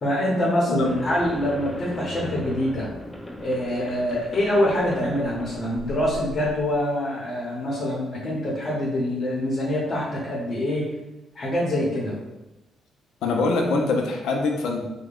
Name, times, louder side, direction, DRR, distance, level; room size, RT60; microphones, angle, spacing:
voice 1, 0.0-2.9 3.4-10.9 11.3-12.1, left 1 dB, 45° left, -5 dB, 0.8 m, -25 dB
voice 2, 0.7-1.0 13.2-14.8, left 3 dB, 85° left, 1 dB, 0.5 m, -23 dB
sound 1, 0.8-6.8, equal, 10° left, 0.4 m, -38 dB
3.5 x 2.2 x 2.4 m, 0.98 s
cardioid pair, 90°, 0 cm